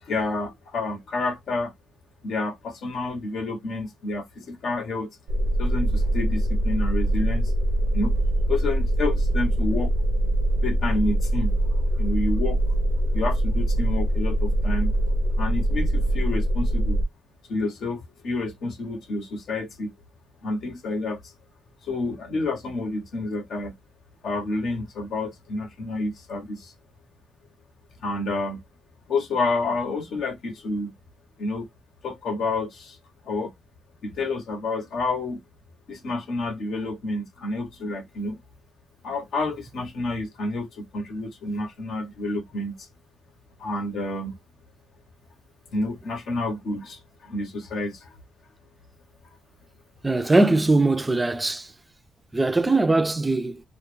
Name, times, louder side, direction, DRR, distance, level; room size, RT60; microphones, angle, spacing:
voice 1, 0.0-1.7 2.2-5.2 5.6-7.5 7.9-8.2 8.5-9.9 10.6-11.6 12.0-12.6 13.1-14.9 15.4-17.0 17.5-19.9 20.4-21.3 21.8-23.8 24.2-26.7 28.0-28.6 29.1-30.9 31.4-31.7 32.0-33.0 33.2-33.5 34.0-35.4 35.9-38.4 39.0-42.9 43.6-44.4 45.7-48.2, left 2 dB, 65° left, 0.7 m, -29 dB
sound 1, 5.3-17.0, right 1 dB, 75° right, 0.5 m, -23 dB
voice 2, 50.0-51.7 52.3-53.6, right 2 dB, 15° right, 0.4 m, -21 dB
2.2 x 2.0 x 3.0 m
cardioid pair, 90°, 0 cm